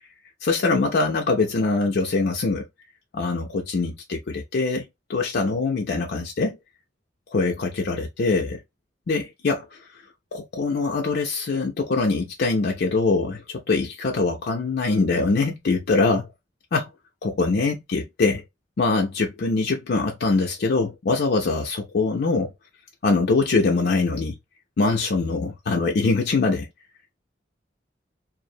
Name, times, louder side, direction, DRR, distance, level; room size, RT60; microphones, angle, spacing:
voice 1, 0.4-2.7 3.1-6.6 7.3-8.6 9.1-9.8 10.3-16.3 16.7-16.9 17.2-18.4 18.8-22.5 23.0-24.4 24.8-26.7, left 3 dB, 60° left, 0.5 m, -23 dB
2.5 x 2.0 x 2.6 m
head